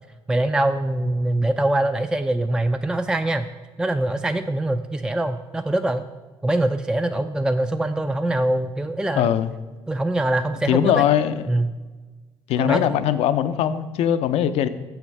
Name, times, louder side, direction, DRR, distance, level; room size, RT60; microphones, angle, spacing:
voice 1, 0.3-3.5 3.8-6.1 6.4-9.3 9.9-11.0 11.5-11.7 12.6-13.0, right 1 dB, 5° right, 9 dB, 0.4 m, -23 dB
voice 2, 9.2-9.5 10.7-11.4 12.5-14.7, left 10 dB, 75° left, 12 dB, 0.5 m, -20 dB
7.1 x 5.8 x 5.3 m, 1.3 s
supercardioid pair, 80°, 11 cm